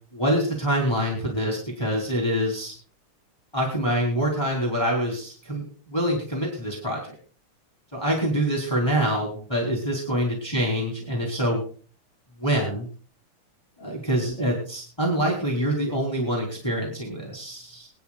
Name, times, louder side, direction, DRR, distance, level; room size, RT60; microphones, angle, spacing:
voice 1, 0.1-2.7 3.5-7.1 7.9-11.7 12.4-12.9 13.8-17.9, right 1 dB, 10° left, -2 dB, 3.2 m, -25 dB
24.5 x 9.8 x 2.4 m, 0.41 s
omnidirectional pair, 2.4 m